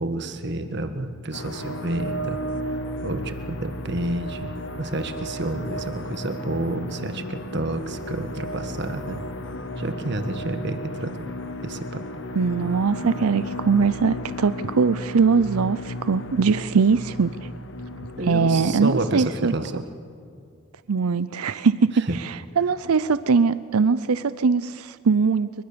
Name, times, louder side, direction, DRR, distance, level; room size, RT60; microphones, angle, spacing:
voice 1, 0.0-2.4 3.0-4.5 4.8-9.2 9.8-11.2 11.6-12.0 18.2-19.8 22.1-22.2, right 1 dB, 50° right, 8 dB, 1.6 m, -29 dB
sound 1, 1.3-19.4, equal, 55° left, 1.4 m, -34 dB
voice 2, 12.3-17.3 18.2-19.8 20.9-25.6, right 5 dB, 85° right, 15 dB, 0.6 m, -21 dB
28.0 x 23.5 x 6.9 m, 2.3 s
head